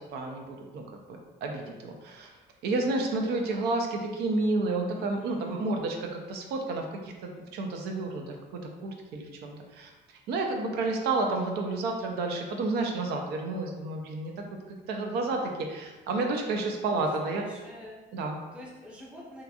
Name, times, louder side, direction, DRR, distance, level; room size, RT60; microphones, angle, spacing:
voice 1, 0.1-0.8 1.4-2.3 2.6-14.3 14.7-17.4 18.1-18.4, right 3 dB, 75° right, 3 dB, 0.4 m, -31 dB
voice 2, 5.0-5.6 17.2-17.9 18.5-19.4, left 1 dB, 5° right, -4 dB, 0.5 m, -47 dB
2.8 x 2.5 x 2.3 m, 1.2 s
cardioid pair, 110°, 17 cm